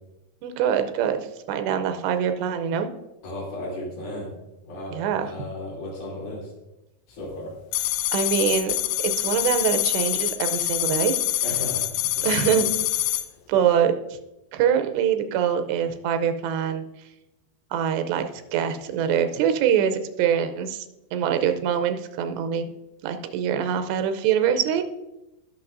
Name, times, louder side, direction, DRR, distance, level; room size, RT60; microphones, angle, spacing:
voice 1, 0.4-1.2 1.5-2.9 4.9-5.3 8.1-8.7 9.0-11.1 12.2-12.7 13.5-13.9 14.5-16.8 17.7-18.3 18.5-20.9 21.1-22.7 23.0-24.8, right 8 dB, 85° right, 8 dB, 2.9 m, -24 dB
voice 2, 3.2-4.4 4.7-6.5 7.1-7.5 11.4-12.6 13.1-13.2, left 1 dB, 60° left, -5 dB, 4.8 m, -35 dB
sound 1, 7.7-13.3, left 14 dB, 80° left, 2.4 m, -25 dB
19.0 x 6.5 x 2.6 m, 0.94 s
omnidirectional pair, 4.9 m